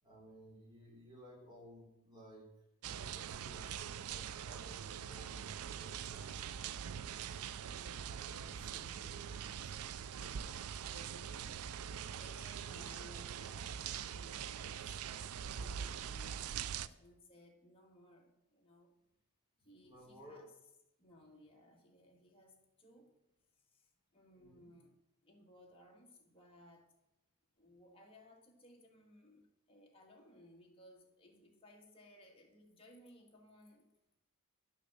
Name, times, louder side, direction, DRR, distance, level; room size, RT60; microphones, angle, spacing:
voice 1, 0.0-2.5 2.9-6.4 19.8-20.4 24.4-24.7, equal, 20° right, 3.8 m, -57 dB
sound 1, 2.8-16.9, right 8 dB, 75° right, 0.4 m, -43 dB
voice 2, 7.7-19.0 19.6-20.5 21.0-23.2 23.5-26.9 27.6-33.9, left 1 dB, 25° left, 1.8 m, -61 dB
10.5 x 6.5 x 6.9 m
head